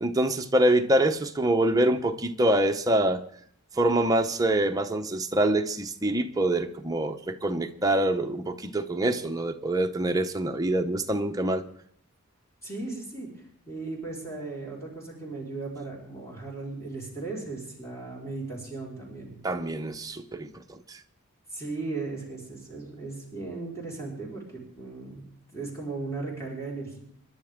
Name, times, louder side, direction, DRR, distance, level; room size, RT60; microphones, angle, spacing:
voice 1, 0.0-3.2 3.8-11.6 19.4-20.5 20.9-21.0, right 1 dB, 15° right, 0.8 m, -25 dB
voice 2, 12.6-13.3 13.7-19.4 21.5-25.2 25.5-27.0, right 3 dB, 15° left, 4.7 m, -36 dB
29.0 x 11.0 x 3.7 m
head